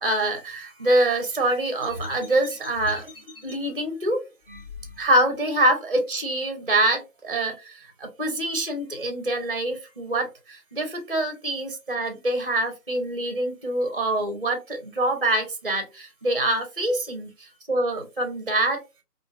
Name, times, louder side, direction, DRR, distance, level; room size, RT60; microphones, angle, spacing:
voice 1, 0.0-3.1 3.4-4.2 5.0-18.8, right 1 dB, 35° right, 6 dB, 0.4 m, -25 dB
sound 1, 1.8-3.5 4.4-5.4, left 2 dB, 35° left, 0.8 m, -40 dB
2.9 x 2.4 x 2.3 m, 0.26 s
figure-of-eight pair, 155°, 48 cm